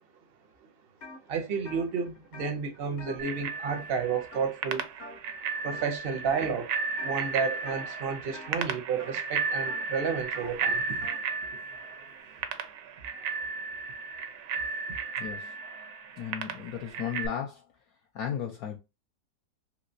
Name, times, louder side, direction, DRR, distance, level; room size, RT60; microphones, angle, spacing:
sound 1, 1.0-1.2 1.5-4.0 4.3-4.7 5.0-5.4 5.7-6.5 7.0-7.3 7.6-11.3, left 2 dB, 45° left, 0.6 m, -47 dB
voice 1, 1.3-4.9 5.6-11.1, right 5 dB, 55° right, 0.7 m, -31 dB
Bicycle bell, 3.2-17.3, right 5 dB, 75° right, 1.0 m, -34 dB
voice 2, 15.2-15.6 16.2-17.6 18.1-18.8, left 8 dB, 70° left, 1.0 m, -35 dB
3.1 x 2.9 x 2.6 m
omnidirectional pair, 1.7 m